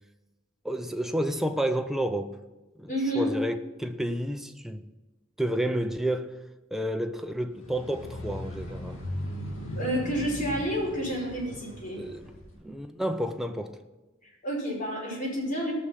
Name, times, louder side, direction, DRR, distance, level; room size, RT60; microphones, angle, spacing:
voice 1, 0.6-2.4 2.8-4.8 5.4-6.4 6.7-9.0 12.0-13.8, right 1 dB, ahead, 0.6 m, -30 dB
voice 2, 2.9-3.3 9.8-12.0 14.2-15.7, equal, 40° left, 5.3 m, -30 dB
sound 1, 7.6-12.5, left 1 dB, 90° left, 2.7 m, -38 dB
18.0 x 6.4 x 5.8 m
head